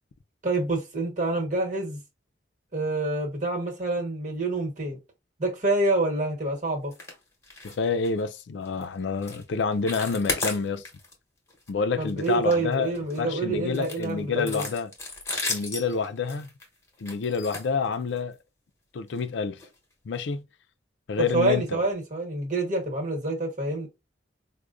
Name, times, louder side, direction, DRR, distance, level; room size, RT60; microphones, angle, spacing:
voice 1, 0.4-2.0 2.7-5.0 5.4-6.9 12.0-14.6 21.2-23.9, right 2 dB, 40° right, 1.2 m, -27 dB
sound 1, 6.9-7.2 7.4-7.8 8.0-8.2 8.7-8.8 9.2-9.4 9.7-11.1 11.5-11.7 12.1-13.2 13.7-18.3 19.1-19.2 19.6-19.7 20.1-20.2, left 2 dB, 15° left, 0.9 m, -34 dB
voice 2, 7.6-10.8 11.7-12.9 13.2-14.9 15.5-16.5 17.0-18.4 18.9-19.6 20.1-20.4 21.1-21.6, left 5 dB, 70° left, 0.4 m, -28 dB
4.7 x 2.1 x 2.4 m
head